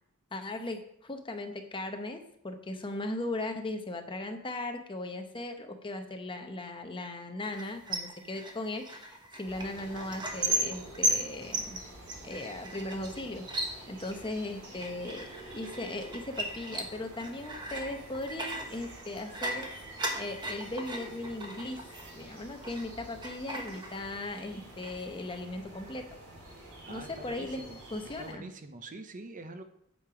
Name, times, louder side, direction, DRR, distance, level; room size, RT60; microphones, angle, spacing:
voice 1, 0.3-11.8 12.2-13.5 13.9-19.7 20.1-21.8 22.1-26.1 26.9-27.6 27.9-28.5, left 2 dB, 25° left, 5 dB, 0.9 m, -38 dB
sound 1, 7.5-22.9 23.2-24.4 24.7-25.4, right 1 dB, 20° right, 1.2 m, -37 dB
sound 2, 9.4-28.3, right 1 dB, 80° right, 4.1 m, -49 dB
voice 2, 26.9-27.8 28.2-29.6, right 2 dB, 35° right, 8 dB, 0.7 m, -45 dB
8.8 x 6.7 x 4.9 m, 0.72 s
head